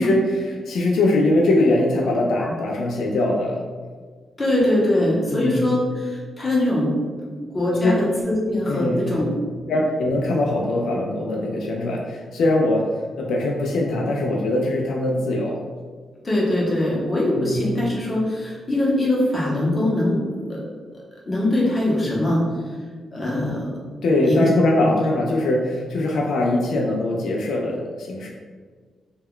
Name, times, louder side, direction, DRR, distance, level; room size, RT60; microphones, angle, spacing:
voice 1, 0.0-3.6 5.3-5.6 7.8-8.0 8.7-9.0 9.7-12.9 13.2-15.6 17.3-17.6 24.0-28.3, left 1 dB, 70° left, -1 dB, 0.3 m, -22 dB
voice 2, 4.4-6.9 7.3-9.3 9.7-9.8 16.2-20.6 20.9-22.8 23.1-23.7 24.2-24.5 24.8-24.9, left 1 dB, 20° left, -5 dB, 0.6 m, -22 dB
2.2 x 2.1 x 3.5 m, 1.5 s
wide cardioid pair, 170°, 0 cm